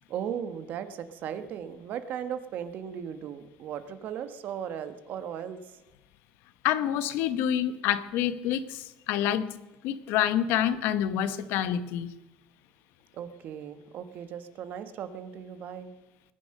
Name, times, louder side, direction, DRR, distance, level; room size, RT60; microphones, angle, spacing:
voice 1, 0.1-5.6 13.1-15.9, right 8 dB, 50° right, 11 dB, 1.2 m, -37 dB
voice 2, 6.6-9.5 9.8-12.1, left 10 dB, 65° left, 13 dB, 1.0 m, -27 dB
21.0 x 9.6 x 6.6 m, 1.0 s
cardioid pair, 150°, 4 cm